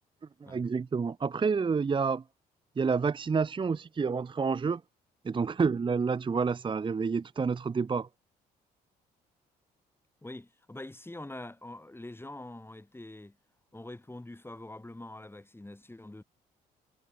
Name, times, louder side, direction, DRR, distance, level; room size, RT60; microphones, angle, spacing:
voice 1, 0.4-2.2 2.8-4.8 5.2-8.1, right 5 dB, 25° right, 0.7 m, -29 dB
voice 2, 10.2-13.4 13.7-16.2, left 2 dB, 10° left, 5.7 m, -44 dB
hypercardioid pair, 60°, 18 cm